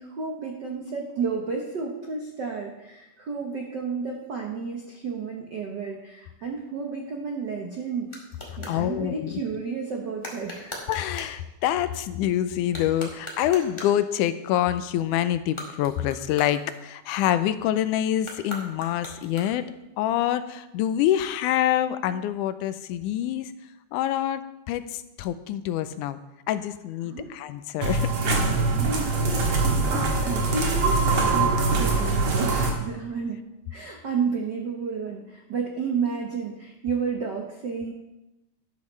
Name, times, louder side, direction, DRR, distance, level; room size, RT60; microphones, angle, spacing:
voice 1, 0.0-8.1 8.6-10.8 27.0-27.3 28.7-29.6 30.2-33.4 33.7-37.9, right 5 dB, 70° right, 1 dB, 1.0 m, -31 dB
sound 1, 7.1-8.8 10.2-11.4 12.6-14.1 15.4-17.2 18.2-19.8, equal, 15° left, 1.4 m, -41 dB
voice 2, 8.7-9.4 10.9-19.6 20.0-23.5 23.9-26.2 26.5-28.1, left 11 dB, 85° left, 12 dB, 2.1 m, -26 dB
sound 2, 27.8-32.7, right 3 dB, 50° right, 2.0 m, -23 dB
12.5 x 11.5 x 3.2 m, 0.96 s
omnidirectional pair, 3.6 m